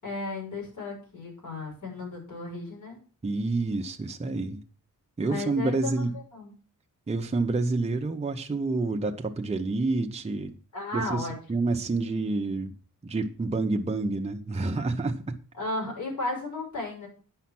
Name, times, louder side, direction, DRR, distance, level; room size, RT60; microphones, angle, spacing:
voice 1, 0.0-3.0 5.2-6.5 10.7-11.7 15.6-17.1, left 2 dB, 65° left, 6.0 m, -35 dB
voice 2, 3.2-4.6 5.2-6.1 7.1-10.6 10.9-12.7 13.0-15.4, right 3 dB, 20° right, 0.7 m, -28 dB
9.3 x 5.7 x 5.9 m
wide cardioid pair, 150°, 32 cm